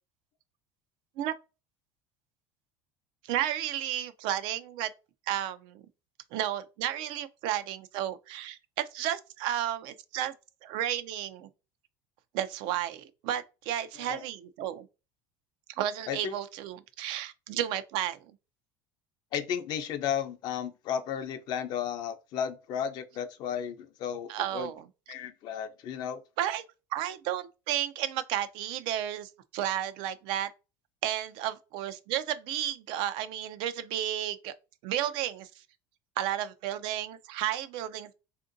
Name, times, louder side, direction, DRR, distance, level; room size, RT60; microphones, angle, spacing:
voice 1, 3.3-4.9 5.3-5.8 6.3-10.3 10.6-11.5 12.3-14.9 15.8-18.2 24.3-24.9 26.4-26.6 26.9-30.5 31.0-34.5 34.8-35.5 36.2-38.1, right 11 dB, 65° right, 0.4 m, -32 dB
voice 2, 19.3-24.7 25.1-26.2, left 8 dB, 55° left, 0.5 m, -34 dB
3.5 x 2.5 x 2.5 m
supercardioid pair, 125°, 9 cm